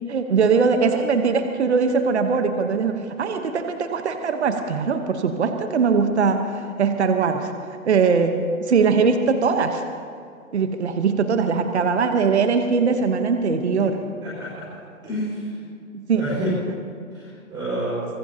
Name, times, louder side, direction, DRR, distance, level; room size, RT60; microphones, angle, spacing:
voice 1, 0.1-6.5 6.8-7.5 7.8-9.8 10.5-14.0 15.9-16.2, right 5 dB, 50° right, 6 dB, 1.0 m, -21 dB
voice 2, 14.2-14.6 15.0-15.5 16.1-16.5 17.1-18.1, equal, 10° right, -9 dB, 4.9 m, -29 dB
25.0 x 18.5 x 2.8 m, 2.3 s
hypercardioid pair, 180°, 42 cm